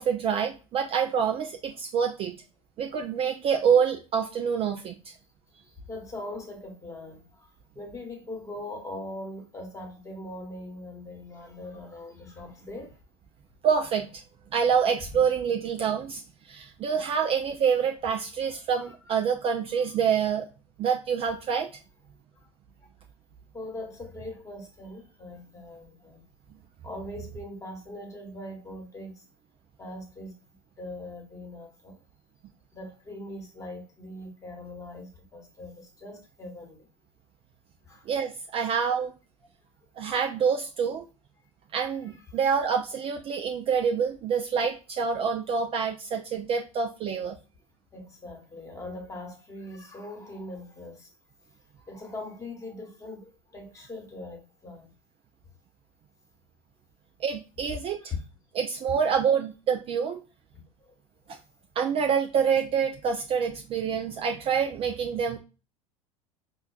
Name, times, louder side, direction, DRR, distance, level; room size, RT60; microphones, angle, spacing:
voice 1, 0.0-2.4 2.8-4.9 13.6-14.2 14.5-20.4 20.8-21.7 38.1-39.1 40.0-41.0 41.7-47.4 57.2-58.0 58.6-60.2 61.8-65.4, right 7 dB, 30° right, 0.4 m, -26 dB
voice 2, 5.6-13.0 18.9-19.1 19.7-20.0 22.4-22.5 22.8-22.9 23.5-26.2 26.8-29.3 29.8-30.3 30.8-32.0 32.7-36.9 37.8-38.1 41.4-41.5 42.1-42.2 47.9-51.1 51.8-54.9 58.0-58.2 60.8-60.9, left 2 dB, 15° left, 1.2 m, -41 dB
4.4 x 2.2 x 2.3 m
hypercardioid pair, 80°, 19 cm